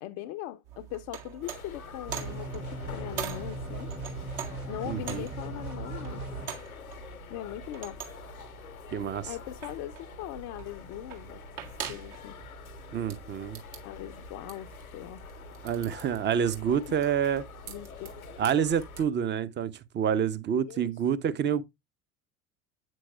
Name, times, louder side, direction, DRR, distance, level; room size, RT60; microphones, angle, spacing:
voice 1, 0.0-3.9 4.7-6.2 7.3-8.0 9.3-11.4 11.8-12.4 13.8-15.3 17.7-18.3 20.7-21.0, left 14 dB, 40° left, 0.5 m, -40 dB
sound 1, 0.6-19.1, right 9 dB, 60° right, 2.0 m, -44 dB
sound 2, 1.4-19.1, left 7 dB, 80° left, 0.8 m, -47 dB
sound 3, 2.1-6.5, right 3 dB, 75° right, 2.4 m, -38 dB
voice 2, 4.9-5.2 8.9-9.3 12.9-13.6 15.6-17.5 18.4-21.6, right 8 dB, 25° right, 0.7 m, -28 dB
8.5 x 6.1 x 2.3 m
figure-of-eight pair, 70°, 42 cm